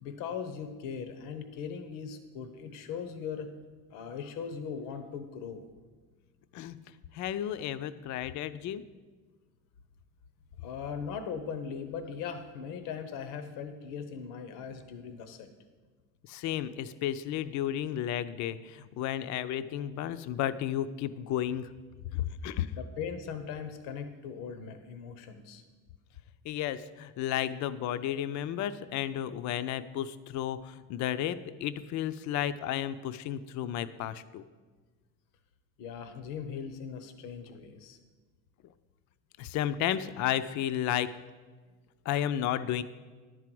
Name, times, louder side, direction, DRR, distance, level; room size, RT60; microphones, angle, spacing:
voice 1, 0.0-3.5 3.9-5.7 10.6-15.5 22.8-25.6 35.8-38.0, left 6 dB, 85° left, 9 dB, 0.9 m, -39 dB
voice 2, 7.1-8.8 16.2-21.7 22.1-22.8 26.4-34.4 39.4-41.1 42.1-42.8, left 11 dB, 60° left, 13 dB, 0.5 m, -33 dB
10.5 x 4.8 x 7.6 m, 1.4 s
cardioid pair, 115°, 32 cm